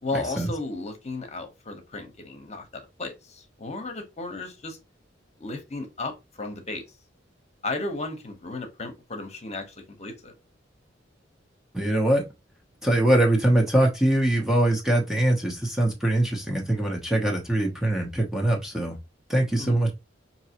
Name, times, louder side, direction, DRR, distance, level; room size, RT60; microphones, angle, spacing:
voice 1, 0.0-4.8 5.4-6.8 7.6-10.3 19.6-19.8, left 2 dB, 35° left, 1.0 m, -34 dB
voice 2, 11.7-12.2 12.8-19.0 19.3-19.9, right 1 dB, ahead, 0.8 m, -22 dB
5.3 x 2.9 x 2.9 m
head